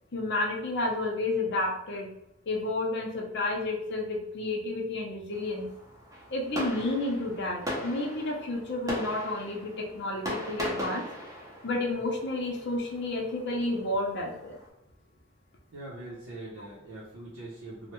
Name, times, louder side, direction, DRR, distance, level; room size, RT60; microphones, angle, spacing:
voice 1, 0.1-2.1 2.5-5.7 6.3-11.1 11.6-14.6, left 2 dB, 55° left, 0 dB, 0.7 m, -31 dB
Fireworks, 5.3-14.7, equal, 15° right, 0.7 m, -39 dB
voice 2, 15.7-17.9, right 2 dB, 85° right, -6 dB, 0.7 m, -42 dB
3.1 x 2.1 x 3.0 m, 0.84 s
head